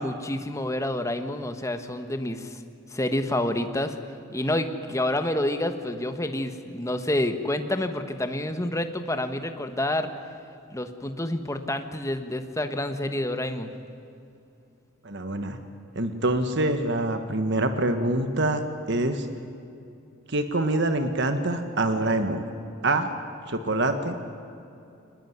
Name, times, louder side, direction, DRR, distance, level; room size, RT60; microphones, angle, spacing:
voice 1, 0.0-2.6 2.9-3.9 4.3-10.1 10.7-13.7, left 1 dB, 15° left, 8 dB, 1.3 m, -28 dB
voice 2, 15.0-15.6 15.9-18.6 18.9-19.3 20.3-22.4 22.8-23.1 23.5-24.1, right 2 dB, 55° right, 7 dB, 1.5 m, -25 dB
23.5 x 20.0 x 9.6 m, 2.6 s
head